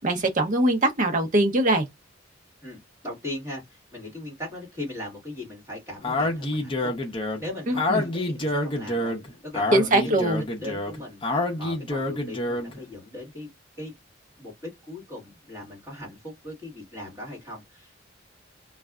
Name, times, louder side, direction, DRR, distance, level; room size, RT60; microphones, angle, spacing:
voice 1, 0.0-1.9 7.7-8.0 9.7-10.4, right 1 dB, 45° right, 0.7 m, -22 dB
voice 2, 2.6-9.1 9.4-10.3 10.6-11.2 11.6-13.5 13.8-13.9 14.4-17.9, left 1 dB, 15° right, 1.9 m, -39 dB
Speech, 6.0-12.8, left 2 dB, 25° left, 0.7 m, -28 dB
3.2 x 2.4 x 2.3 m
head